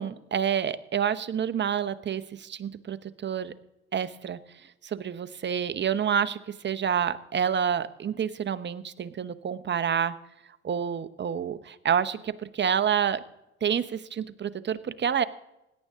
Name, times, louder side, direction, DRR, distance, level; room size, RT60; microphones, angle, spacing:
voice 1, 0.0-3.5 3.9-4.4 4.8-6.4 6.6-10.1 10.6-13.2 13.6-15.2, right 8 dB, 35° right, 13 dB, 1.0 m, -28 dB
17.0 x 10.5 x 3.7 m, 0.89 s
hypercardioid pair, 65°, 30 cm